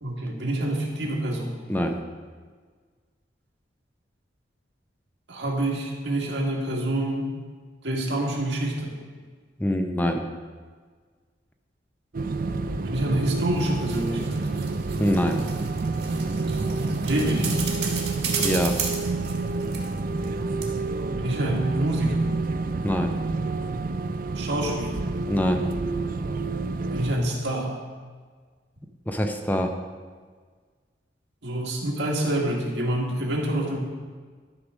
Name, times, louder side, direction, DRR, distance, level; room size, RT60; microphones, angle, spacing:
voice 1, 0.0-1.5 5.3-7.3 7.8-8.9 12.8-14.4 17.0-17.5 21.2-22.3 24.4-25.0 26.9-27.8 31.4-33.8, right 1 dB, 85° right, -1 dB, 1.9 m, -27 dB
voice 2, 1.7-2.0 9.6-10.3 15.0-15.4 18.4-18.8 22.8-23.1 25.3-25.7 29.1-29.7, equal, 10° left, 5 dB, 0.6 m, -24 dB
sound 1, 12.1-27.2, right 3 dB, 50° right, 0.5 m, -28 dB
sound 2, 13.3-20.3 20.6-20.7, right 6 dB, 70° right, 1.7 m, -34 dB
12.0 x 4.7 x 6.3 m, 1.5 s
head